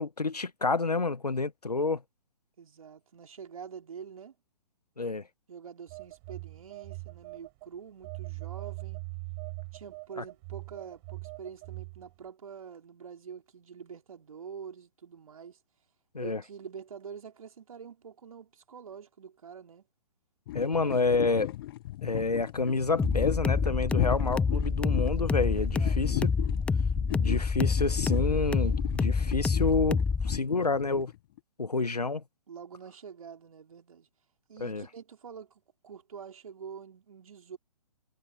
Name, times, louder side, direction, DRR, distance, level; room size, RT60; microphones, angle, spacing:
voice 1, 0.0-2.0 5.0-5.2 16.1-16.4 20.5-21.5 22.0-26.2 27.2-30.0 30.2-31.1 31.6-32.2 34.6-34.8, left 3 dB, 85° left, 1.6 m, -29 dB
voice 2, 2.6-4.3 5.5-9.0 9.7-15.6 16.2-19.8 20.7-20.9 21.2-21.5 25.6-26.1 32.5-34.1 34.5-37.6, right 7 dB, 65° right, 4.5 m, -46 dB
Telephone, 5.9-7.7 8.0-12.1, right 30 dB, 30° right, 5.6 m, -41 dB
sound 1, 20.5-31.4, left 15 dB, 35° left, 0.8 m, -37 dB
sound 2, 23.0-30.4, left 5 dB, 5° left, 0.8 m, -27 dB
figure-of-eight pair, 130°, 20 cm